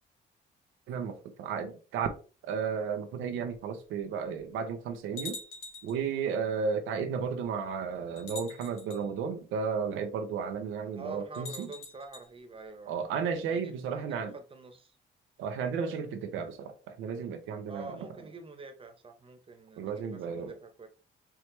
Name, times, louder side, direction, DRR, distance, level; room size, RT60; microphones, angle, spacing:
voice 1, 0.9-2.1 2.4-5.4 5.8-11.7 12.9-14.3 15.4-18.0 19.8-20.6, right 6 dB, 90° right, 0.7 m, -33 dB
sound 1, 5.2-6.0 7.2-7.3 8.2-9.0 11.3-12.3, left 3 dB, 85° left, 1.4 m, -44 dB
voice 2, 10.9-13.0 13.5-15.0 17.7-20.9, right 3 dB, 25° right, 1.1 m, -46 dB
4.6 x 3.1 x 3.2 m
cardioid pair, 90°, 20 cm